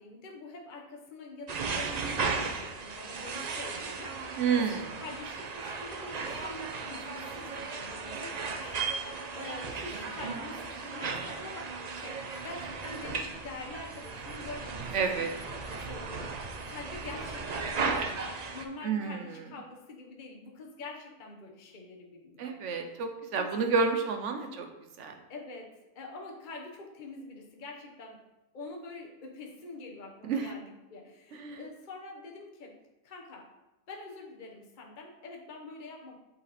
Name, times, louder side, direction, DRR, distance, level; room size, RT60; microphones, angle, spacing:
voice 1, 0.0-4.6 5.0-22.5 23.4-23.5 24.4-24.6 25.3-28.2 28.5-32.8 33.0-33.5 33.9-36.1, left 3 dB, 40° left, 0 dB, 1.0 m, -45 dB
sound 1, 1.5-18.6, right 4 dB, 50° right, 0.5 m, -36 dB
voice 2, 4.4-5.0 14.9-15.3 18.8-19.5 22.4-24.7 25.0-25.1 30.2-30.5 31.3-31.6, right 5 dB, 65° right, 6 dB, 1.1 m, -30 dB
7.8 x 4.2 x 4.2 m, 1.0 s
omnidirectional pair, 1.4 m